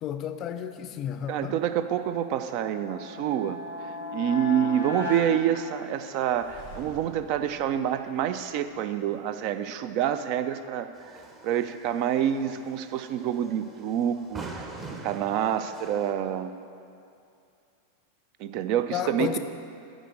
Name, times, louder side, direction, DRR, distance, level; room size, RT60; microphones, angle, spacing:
voice 1, 0.0-1.6 18.9-19.4, left 9 dB, 35° left, 9 dB, 0.5 m, -32 dB
voice 2, 1.3-3.6 4.1-10.9 11.4-14.6 15.0-16.5 18.4-19.4, right 10 dB, 45° right, 10 dB, 0.4 m, -27 dB
sound 1, 2.0-6.3, left 4 dB, 85° right, 1.2 m, -37 dB
sound 2, 6.2-9.2, right 3 dB, 60° right, 1.9 m, -49 dB
sound 3, 10.9-16.1, right 2 dB, 20° right, 0.9 m, -44 dB
9.0 x 5.1 x 6.3 m, 2.5 s
figure-of-eight pair, 90°, 0 cm